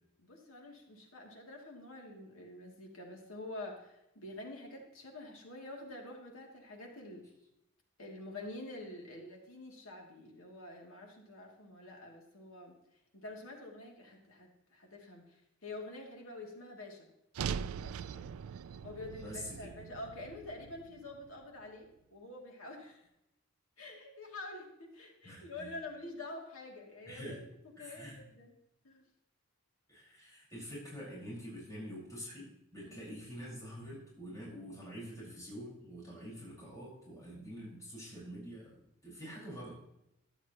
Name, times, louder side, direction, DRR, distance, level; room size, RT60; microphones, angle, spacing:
voice 1, 0.2-7.2 8.0-12.7 13.1-17.1 17.8-18.3 18.8-23.1 23.8-27.4 27.8-28.5 28.8-29.0 32.8-33.1, left 2 dB, 75° left, 0 dB, 2.6 m, -47 dB
sound 1, 17.3-21.6, right 7 dB, 80° right, 0.4 m, -42 dB
voice 2, 19.2-19.7 25.2-25.7 27.1-27.4 27.8-28.2 29.9-39.8, equal, 15° left, -6 dB, 5.0 m, -46 dB
14.0 x 10.5 x 3.0 m, 0.82 s
head